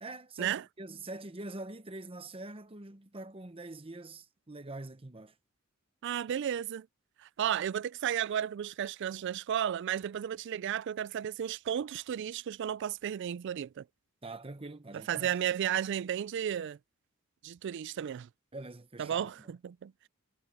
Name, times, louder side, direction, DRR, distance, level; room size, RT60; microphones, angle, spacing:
voice 1, 0.0-5.3 14.2-15.3 18.5-19.5, right 2 dB, 25° right, 1.0 m, -44 dB
voice 2, 6.0-6.9 7.2-13.8 15.1-16.8 17.4-18.3 19.0-20.1, right 9 dB, 60° right, 0.3 m, -33 dB
head